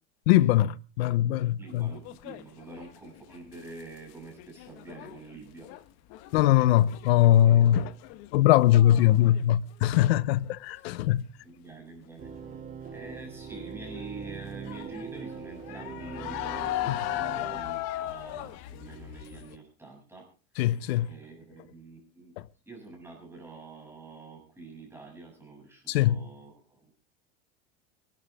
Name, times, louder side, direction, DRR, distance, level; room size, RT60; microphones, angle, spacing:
voice 1, 0.3-1.9 6.3-7.9 8.3-11.3 16.9-17.0 20.6-21.1 25.9-26.3, left 13 dB, 70° left, 0.9 m, -21 dB
voice 2, 1.6-5.7 7.4-8.0 9.2-9.3 10.7-10.8 11.4-12.3 12.9-20.3 21.1-22.3 22.7-26.9, right 3 dB, 5° right, 7.3 m, -46 dB
sound 1, 1.7-4.1 4.4-9.5 9.7-10.2 10.6-11.1 12.9-13.2 13.6-13.7 14.7-19.6, left 15 dB, 50° left, 1.3 m, -38 dB
sound 2, 12.2-17.6, right 6 dB, 25° right, 3.4 m, -42 dB
24.5 x 12.0 x 3.6 m
supercardioid pair, 135°, 32 cm